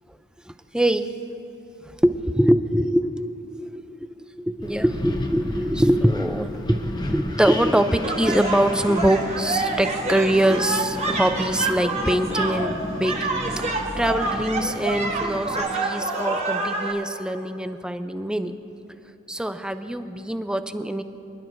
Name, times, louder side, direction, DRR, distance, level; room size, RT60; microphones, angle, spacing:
voice 1, 0.5-1.1 1.8-3.1 3.5-13.2 13.5-18.5 19.3-21.0, right 1 dB, 5° right, 10 dB, 0.4 m, -23 dB
Wind, 4.6-15.6, left 1 dB, 20° left, 0.7 m, -33 dB
sound 1, 8.0-16.9, right 3 dB, 35° right, 1.1 m, -27 dB
25.0 x 11.0 x 2.6 m, 3.0 s
head